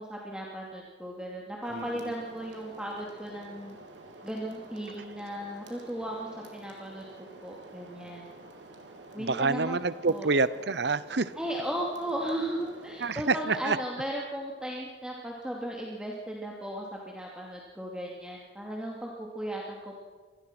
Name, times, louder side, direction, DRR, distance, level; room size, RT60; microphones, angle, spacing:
voice 1, 0.0-3.8 4.2-7.1 7.4-8.2 9.1-9.8 10.1-10.3 11.4-20.0, right 1 dB, 5° right, -2 dB, 2.6 m, -36 dB
sound 1, 1.6-13.6, right 2 dB, 80° right, 3.5 m, -49 dB
voice 2, 1.7-2.1 9.2-11.3 13.0-13.8, right 3 dB, 65° right, 17 dB, 0.8 m, -28 dB
25.5 x 19.0 x 6.1 m, 1.4 s
head